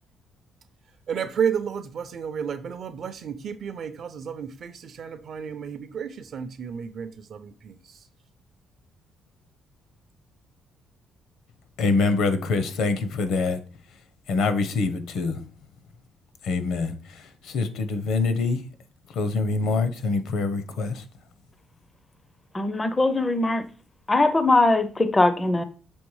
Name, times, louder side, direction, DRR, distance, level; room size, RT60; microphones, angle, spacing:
voice 1, 1.1-7.8, right 7 dB, 40° right, 0.5 m, -31 dB
voice 2, 11.8-13.6 14.3-15.4 16.4-18.6 19.1-21.0, left 3 dB, 65° left, 0.8 m, -25 dB
voice 3, 22.5-23.6 24.1-25.6, left 2 dB, 15° left, 0.5 m, -21 dB
6.3 x 3.4 x 4.7 m
cardioid pair, 180°, 0 cm